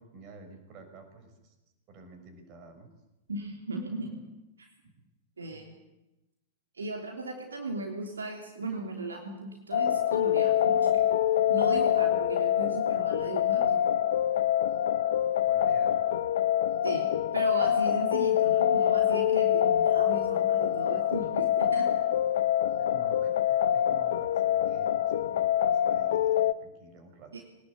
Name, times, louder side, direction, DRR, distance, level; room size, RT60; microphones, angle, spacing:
voice 1, 0.0-1.5 1.9-2.9 4.8-4.9 5.5-5.6 15.4-16.0 22.8-27.4, right 4 dB, 40° right, 6 dB, 6.1 m, -50 dB
voice 2, 3.3-4.2 4.6-4.7 5.4-5.7 6.8-11.1 11.5-13.8 16.8-21.9 27.3-27.4, right 2 dB, 75° right, 2 dB, 3.3 m, -37 dB
sound 1, 9.7-26.5, left 10 dB, 60° left, 0.9 m, -25 dB
22.0 x 19.5 x 8.7 m, 0.97 s
figure-of-eight pair, 100°, 0 cm